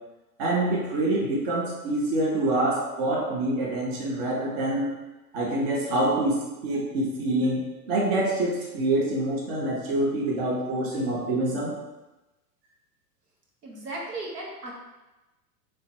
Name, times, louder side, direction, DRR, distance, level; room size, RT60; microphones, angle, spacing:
voice 1, 0.4-4.9 5.3-11.7, right 1 dB, 35° right, -3 dB, 0.8 m, -26 dB
voice 2, 13.6-14.7, right 2 dB, 70° right, -3 dB, 1.3 m, -36 dB
3.1 x 2.9 x 4.4 m, 1.0 s
figure-of-eight pair, 100°, 49 cm